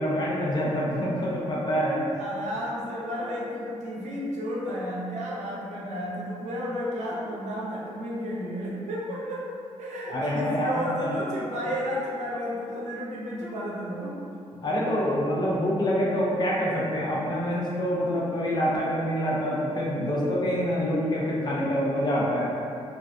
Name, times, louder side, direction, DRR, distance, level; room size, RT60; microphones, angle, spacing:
voice 1, 0.0-2.1 10.1-11.2 14.6-22.5, equal, 40° left, -5 dB, 0.6 m, -26 dB
voice 2, 2.1-9.4 9.8-14.1, equal, 80° right, -5 dB, 0.5 m, -32 dB
2.3 x 2.2 x 2.5 m, 2.6 s
cardioid pair, 70°, 12 cm